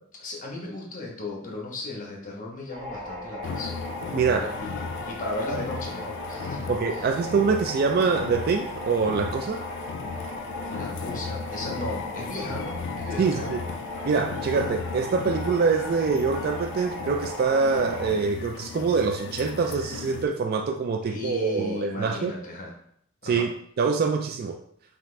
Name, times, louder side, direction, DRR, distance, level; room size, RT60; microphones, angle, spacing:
voice 1, 0.2-3.9 4.2-4.7 5.1-7.2 10.7-13.5 21.1-22.7 23.2-23.5, left 2 dB, 40° left, 0 dB, 1.0 m, -36 dB
sound 1, 2.7-18.1, left 1 dB, 25° right, 1.4 m, -37 dB
sound 2, 3.4-20.3, left 5 dB, 55° left, 0.3 m, -36 dB
voice 2, 4.1-4.4 6.7-9.6 13.2-13.6 14.1-22.3 23.2-23.5 23.8-24.6, right 5 dB, 45° right, 4 dB, 0.3 m, -24 dB
5.8 x 2.5 x 3.2 m, 0.66 s
head